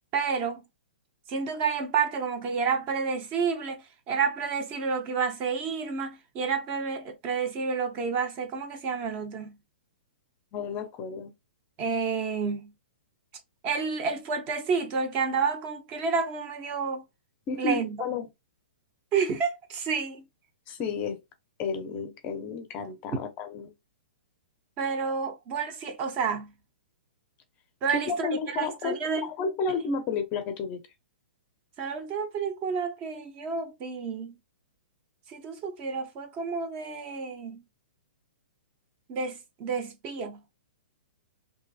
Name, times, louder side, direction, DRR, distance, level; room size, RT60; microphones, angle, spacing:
voice 1, 0.1-0.6 1.3-9.5 11.8-12.7 13.6-17.0 17.6-18.0 19.1-20.2 24.8-26.5 27.8-29.3 31.8-34.4 35.3-37.6 39.1-40.4, right 5 dB, 30° right, 0.5 m, -30 dB
voice 2, 10.5-11.3 17.5-18.3 20.7-21.2 21.6-23.7 28.1-30.8, left 4 dB, 25° left, 0.5 m, -32 dB
2.6 x 2.4 x 2.3 m
hypercardioid pair, 145°, 6 cm